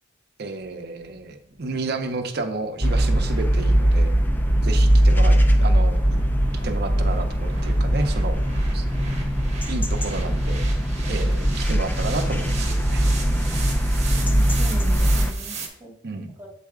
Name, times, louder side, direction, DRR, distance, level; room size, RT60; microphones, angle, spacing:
voice 1, 0.4-4.1 4.6-6.2 6.6-8.4 8.7-8.8 9.7-10.6 11.1-13.1 16.0-16.3, right 3 dB, 55° right, 6 dB, 0.6 m, -31 dB
sound 1, 0.6-15.7, right 5 dB, 35° right, 1.1 m, -39 dB
sound 2, 2.8-15.3, equal, 10° left, 0.4 m, -20 dB
voice 2, 14.3-16.5, right 1 dB, 10° right, -3 dB, 1.9 m, -39 dB
7.5 x 4.0 x 3.6 m, 0.70 s
head